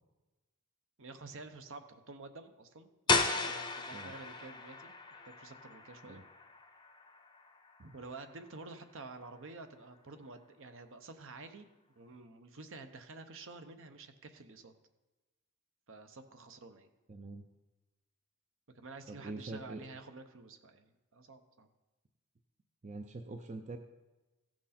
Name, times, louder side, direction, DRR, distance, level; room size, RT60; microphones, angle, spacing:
voice 1, 1.0-6.2 7.8-11.7 12.0-14.7 15.9-16.9 18.7-21.7, right 3 dB, 60° right, 8 dB, 0.8 m, -50 dB
sound 1, 3.1-8.7, left 3 dB, 20° left, 0.7 m, -36 dB
voice 2, 17.1-17.5 19.1-19.8 22.8-23.8, right 3 dB, 30° right, 6 dB, 0.5 m, -44 dB
15.0 x 6.1 x 4.3 m, 1.1 s
head